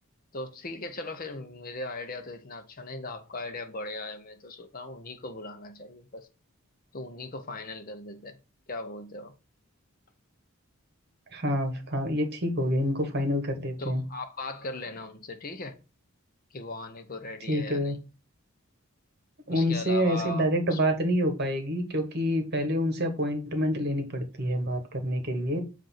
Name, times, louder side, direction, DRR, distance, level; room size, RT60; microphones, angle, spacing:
voice 1, 0.3-6.3 6.9-8.4 8.7-9.3 13.8-15.8 16.5-18.0 19.5-20.8, left 2 dB, 40° left, 0.7 m, -38 dB
voice 2, 11.3-14.0 17.5-18.0 19.5-25.6, equal, 45° right, 1.3 m, -27 dB
7.7 x 2.6 x 5.8 m
head